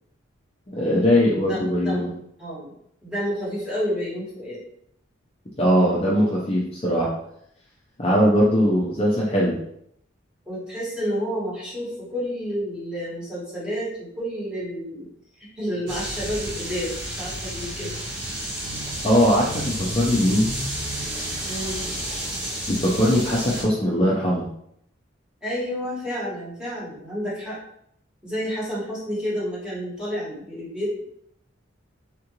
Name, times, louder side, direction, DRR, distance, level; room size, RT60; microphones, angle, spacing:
voice 1, 0.7-2.1 5.6-7.1 8.0-9.6 19.0-20.5 22.7-24.5, equal, 30° left, -6 dB, 0.5 m, -20 dB
voice 2, 1.5-2.1 2.4-2.7 3.0-4.6 8.5-8.6 10.5-15.1 15.4-17.9 21.4-21.9 25.4-27.6 28.2-31.0, equal, 5° right, -9 dB, 1.3 m, -30 dB
sound 1, 15.9-23.6, right 1 dB, 65° right, 1.1 m, -31 dB
3.6 x 2.5 x 2.9 m, 0.71 s
head